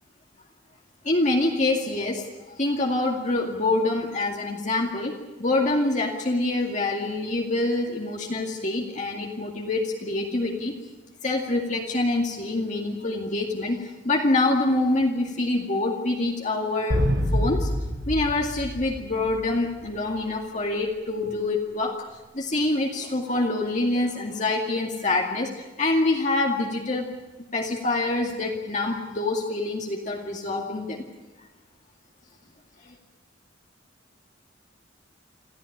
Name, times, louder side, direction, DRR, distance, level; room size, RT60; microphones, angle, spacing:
voice 1, 1.0-10.7 11.2-17.0 17.3-17.7 18.1-22.0 22.3-27.0 27.5-31.1 32.9-33.0, left 2 dB, 40° left, 0 dB, 2.3 m, -26 dB
sound 1, 16.9-19.8, equal, 60° right, 5.6 m, -26 dB
26.5 x 14.5 x 10.0 m, 1.1 s
head